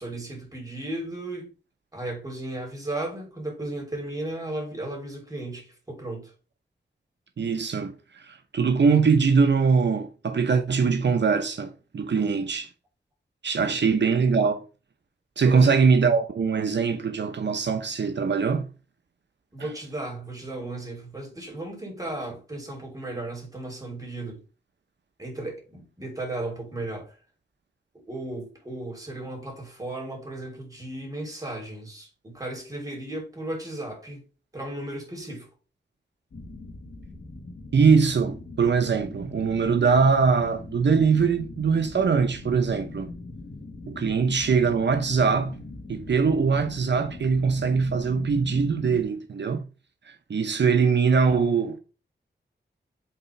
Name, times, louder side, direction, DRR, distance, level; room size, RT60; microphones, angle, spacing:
voice 1, 0.0-1.5 1.9-6.3 13.6-13.8 15.4-15.8 19.5-24.4 25.2-27.2 28.1-34.2 34.5-35.5, right 2 dB, 20° right, 3.4 m, -35 dB
voice 2, 7.4-12.7 13.4-14.6 15.4-18.7 37.7-43.1 43.9-45.5 45.9-49.6 50.1-51.8, right 5 dB, 75° right, 0.8 m, -22 dB
sound 1, 36.3-49.0, left 3 dB, 80° left, 1.8 m, -41 dB
8.3 x 4.0 x 3.3 m
wide cardioid pair, 105°, 18 cm